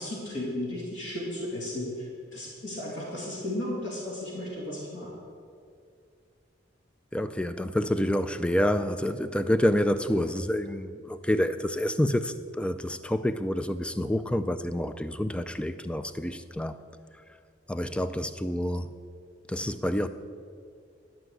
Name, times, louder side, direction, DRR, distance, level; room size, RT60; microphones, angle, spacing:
voice 1, 0.0-5.1, left 1 dB, 90° left, 2.5 m, -34 dB
voice 2, 7.1-16.8 17.7-19.0 19.5-20.1, left 1 dB, 5° left, 0.3 m, -28 dB
12.0 x 5.7 x 7.8 m
head